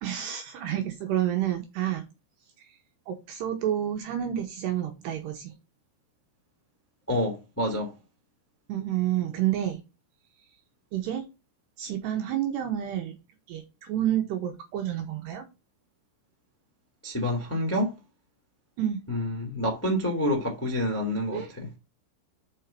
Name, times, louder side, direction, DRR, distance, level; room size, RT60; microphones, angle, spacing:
voice 1, 0.0-2.0 2.6-2.8 3.1-5.5 8.7-9.8 10.9-11.3 11.8-13.2 13.5-15.5 18.8-19.0 21.3-21.5, right 11 dB, 75° right, 2.6 m, -29 dB
voice 2, 7.1-7.9 17.0-17.9 19.1-21.7, left 1 dB, 10° left, 0.6 m, -28 dB
6.7 x 5.4 x 5.7 m
omnidirectional pair, 5.9 m